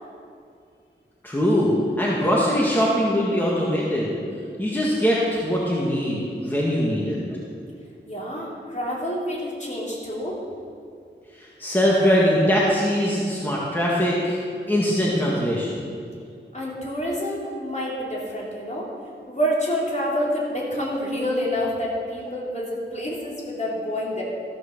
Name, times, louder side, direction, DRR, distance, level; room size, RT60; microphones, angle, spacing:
voice 1, 1.2-4.2 4.6-7.2 11.3-15.8, equal, 10° left, -5 dB, 1.8 m, -22 dB
voice 2, 8.1-10.4 16.5-18.9 19.3-24.2, equal, 35° left, -5 dB, 3.3 m, -27 dB
14.0 x 6.5 x 6.7 m, 2.4 s
wide cardioid pair, 55°, 20 cm